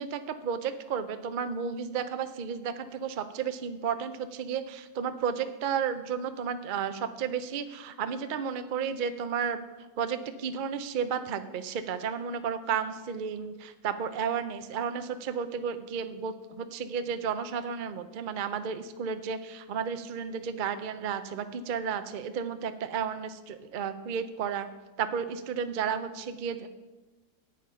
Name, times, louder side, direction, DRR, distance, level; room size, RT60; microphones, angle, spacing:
voice 1, 0.0-9.6 10.0-24.7 25.0-26.7, right 7 dB, 80° right, 10 dB, 0.4 m, -33 dB
8.6 x 8.4 x 5.6 m, 1.1 s
omnidirectional pair, 1.7 m